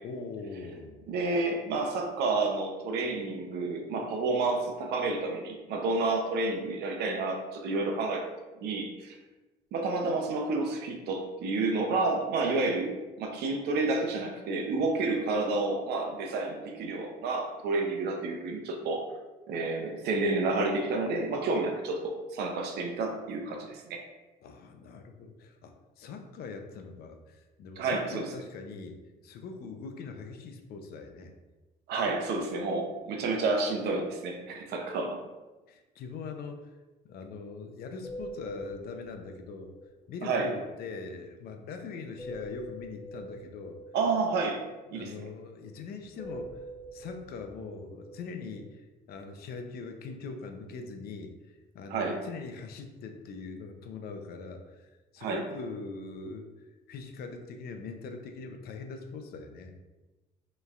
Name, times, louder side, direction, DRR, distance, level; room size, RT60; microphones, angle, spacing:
voice 1, 0.0-1.1 24.4-31.3 35.7-36.8 37.0-39.7 40.1-43.8 44.9-46.6 46.9-59.7, left 4 dB, 65° left, 5 dB, 0.6 m, -42 dB
voice 2, 1.1-8.3 8.6-9.2 9.7-19.0 19.5-24.0 27.8-28.3 31.9-35.2 40.2-40.5 43.9-44.6 44.9-45.3 51.9-52.2 55.2-55.4, right 3 dB, 75° right, 3 dB, 0.7 m, -30 dB
sound 1, 37.1-37.2 37.4-37.7 37.9-41.3 42.2-45.8 46.2-48.7, equal, 35° left, 1.5 m, -46 dB
5.2 x 3.2 x 2.5 m, 1.1 s
cardioid pair, 110°, 17 cm